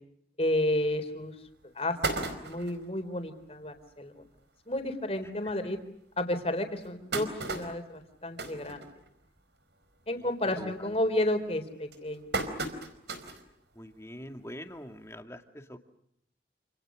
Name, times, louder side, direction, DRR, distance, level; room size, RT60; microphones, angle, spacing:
voice 1, 0.4-1.3 1.7-4.1 4.7-5.8 6.2-8.8 10.1-12.3, left 1 dB, 35° left, 7 dB, 4.0 m, -31 dB
sound 1, 0.9-1.0 1.5-1.6 1.8-2.9 3.4-3.5 3.8-3.9 4.2-4.4 5.1-5.2 5.7-5.8 6.6-9.4 9.8-10.1 10.4-10.8 11.5-13.5 13.9-14.0 15.2-15.3, right 3 dB, 80° right, 4.7 m, -35 dB
voice 2, 13.8-15.4 15.7-15.8, equal, 15° left, 6 dB, 2.2 m, -43 dB
29.0 x 28.5 x 6.4 m, 0.74 s
head